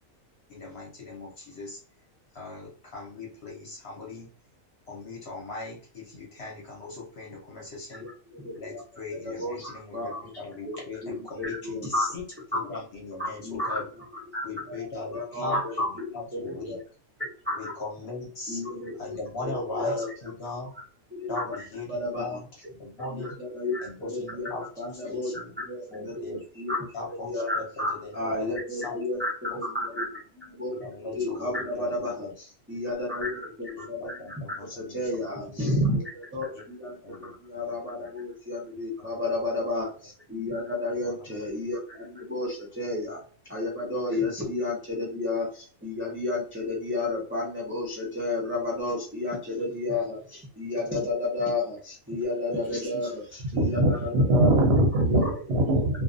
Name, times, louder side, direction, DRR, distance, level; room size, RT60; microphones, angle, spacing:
voice 1, 0.5-1.8 2.3-4.3 4.9-8.1 8.5-12.2 12.5-13.8 14.4-15.6 16.1-16.8 17.5-18.6 19.0-20.7 21.3-22.5 22.7-23.3 23.8-25.5 25.9-26.4 26.9-29.0 30.7-32.3 33.8-35.8 36.5-37.6 38.0-38.1 39.0-39.5 41.0-41.5 44.4-44.5, left 3 dB, 50° left, -2 dB, 0.9 m, -39 dB
voice 2, 7.9-8.8 9.1-10.2 10.6-12.0 12.5-12.6 13.2-13.8 14.3-16.8 17.2-17.7 18.5-20.1 21.1-21.6 21.9-22.4 23.1-26.9 27.3-43.2 43.5-54.5 55.0-55.4, left 2 dB, 15° right, -5 dB, 0.4 m, -32 dB
voice 3, 53.5-56.0, right 1 dB, 55° right, -1 dB, 0.8 m, -22 dB
2.4 x 2.3 x 2.5 m, 0.41 s
omnidirectional pair, 1.5 m